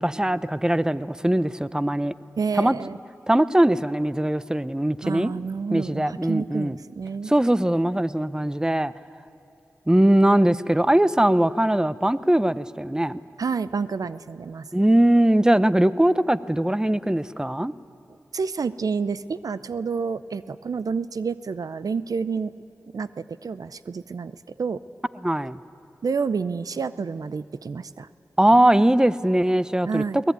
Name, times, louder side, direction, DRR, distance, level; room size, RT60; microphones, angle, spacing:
voice 1, 0.0-2.1 2.6-2.8 3.3-5.3 5.7-6.8 7.3-8.9 9.9-13.2 14.7-17.7 25.2-25.6 28.4-30.3, right 1 dB, 10° right, 16 dB, 0.7 m, -21 dB
voice 2, 2.4-3.0 5.0-7.3 13.4-14.7 18.3-22.5 22.9-24.8 26.0-28.1 29.8-30.2, right 5 dB, 80° right, 15 dB, 0.5 m, -29 dB
22.0 x 18.5 x 9.4 m, 2.8 s
cardioid pair, 40°, 6 cm